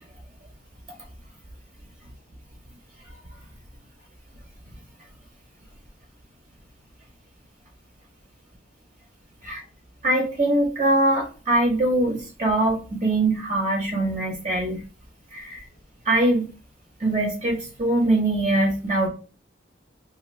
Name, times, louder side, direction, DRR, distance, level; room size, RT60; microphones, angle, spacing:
voice 1, 10.0-14.8 15.3-15.6 16.0-16.5 17.0-19.1, right 1 dB, 30° right, -1 dB, 0.7 m, -22 dB
2.5 x 2.5 x 3.1 m, 0.34 s
head